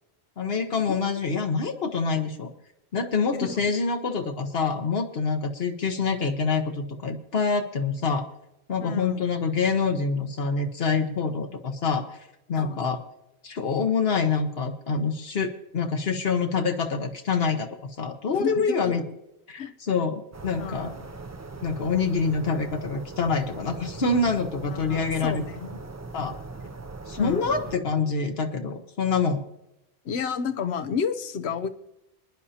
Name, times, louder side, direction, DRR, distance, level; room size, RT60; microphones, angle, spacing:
voice 1, 0.4-2.5 2.9-8.3 8.7-12.2 12.5-13.0 13.4-19.0 19.5-21.0 21.6-25.4 26.1-26.4 27.1-29.4, left 4 dB, 70° left, 5 dB, 1.2 m, -26 dB
voice 2, 3.3-3.6 8.8-9.3 12.6-12.8 18.3-19.0 19.6-19.7 20.6-20.9 24.6-25.8 27.2-27.6 30.0-31.7, left 6 dB, 90° left, 8 dB, 1.0 m, -31 dB
sound 1, 20.3-27.8, right 3 dB, 30° right, 0.3 m, -40 dB
27.5 x 10.0 x 2.8 m, 0.89 s
omnidirectional pair, 1.1 m